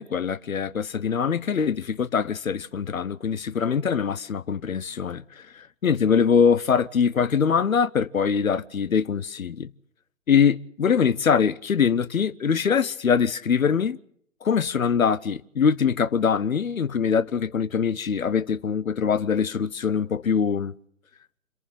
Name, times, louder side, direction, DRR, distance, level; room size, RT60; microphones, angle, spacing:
voice 1, 0.0-5.2 5.8-9.7 10.3-14.0 14.4-20.7, left 6 dB, 80° left, 0.9 m, -23 dB
26.5 x 11.0 x 10.0 m
figure-of-eight pair, 135°, 41 cm